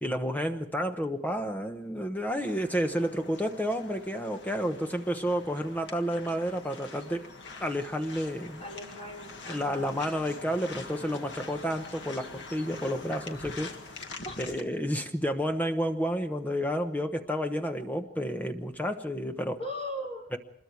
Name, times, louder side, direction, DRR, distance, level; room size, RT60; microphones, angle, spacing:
voice 1, 0.0-7.3 7.6-8.6 9.5-13.7 14.4-19.6 20.3-20.4, equal, 10° left, 6 dB, 1.0 m, -30 dB
sound 1, 2.4-14.6, left 3 dB, 70° left, 1.9 m, -45 dB
voice 2, 8.6-9.9 14.2-14.3 19.6-20.3, equal, 30° left, -1 dB, 4.9 m, -38 dB
26.0 x 21.5 x 4.7 m, 0.71 s
head